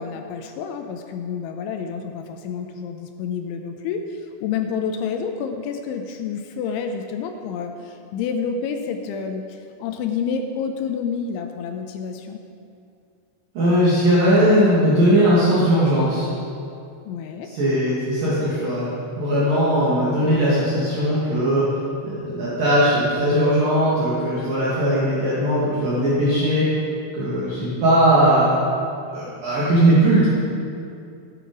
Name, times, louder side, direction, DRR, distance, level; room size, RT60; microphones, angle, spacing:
voice 1, 0.0-12.4 17.1-17.5, left 6 dB, 85° left, 5 dB, 3.0 m, -29 dB
voice 2, 13.6-16.3 17.4-18.9 19.2-21.6 22.0-26.7 27.1-28.5 29.1-30.3, right 1 dB, 50° right, -9 dB, 3.7 m, -19 dB
17.0 x 10.5 x 5.3 m, 2.5 s
omnidirectional pair, 5.7 m